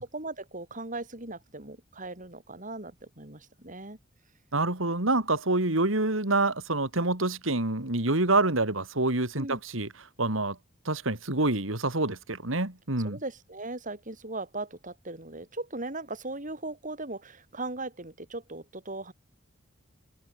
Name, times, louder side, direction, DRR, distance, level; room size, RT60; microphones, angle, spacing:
voice 1, 0.0-4.0 4.9-5.0 9.4-9.6 13.0-19.1, right 2 dB, 40° right, 4.8 m, -38 dB
voice 2, 4.5-9.9 10.2-10.6 10.8-13.2, right 2 dB, 80° right, 3.3 m, -27 dB
head